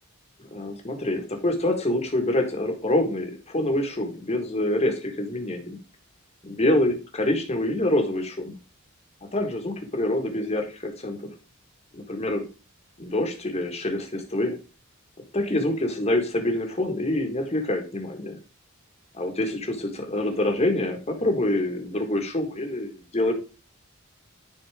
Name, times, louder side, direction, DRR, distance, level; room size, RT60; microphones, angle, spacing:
voice 1, 0.5-5.8 6.4-8.6 9.3-11.3 11.9-12.4 13.0-14.6 15.3-18.4 19.1-23.4, left 1 dB, 30° left, 4 dB, 1.5 m, -26 dB
9.9 x 4.2 x 3.5 m, 0.32 s
head